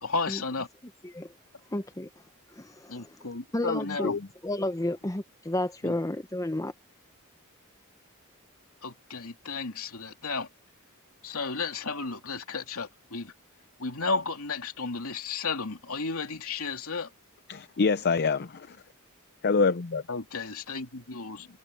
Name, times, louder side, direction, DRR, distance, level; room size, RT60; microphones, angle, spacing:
voice 1, 0.0-0.7 2.9-4.2 5.8-6.0 8.8-10.5 11.2-13.3 13.8-17.1 20.1-21.5, left 4 dB, 70° left, 3.0 m, -33 dB
voice 2, 1.7-2.1 2.5-3.1 3.5-4.1 4.4-6.7, left 1 dB, 15° left, 0.8 m, -31 dB
voice 3, 3.9-4.2 17.5-18.8 19.4-20.0, left 4 dB, 50° left, 0.6 m, -26 dB
head